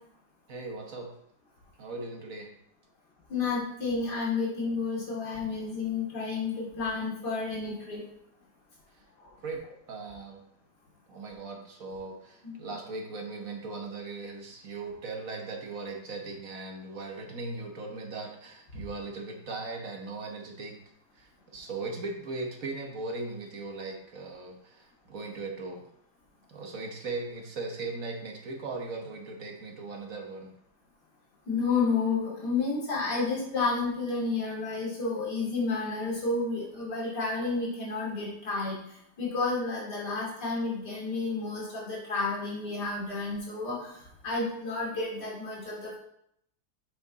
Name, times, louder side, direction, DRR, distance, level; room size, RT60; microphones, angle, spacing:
voice 1, 0.5-1.1 1.8-2.5 8.9-9.0 9.4-9.6 9.9-10.4 11.1-20.7 21.1-25.9 26.5-30.5, right 3 dB, 55° right, 2 dB, 1.5 m, -38 dB
voice 2, 3.3-8.0 12.4-12.5 31.5-38.8 39.2-43.9 44.2-46.0, left 4 dB, 80° left, -4 dB, 3.2 m, -31 dB
7.7 x 5.4 x 4.0 m, 0.74 s
omnidirectional pair, 1.8 m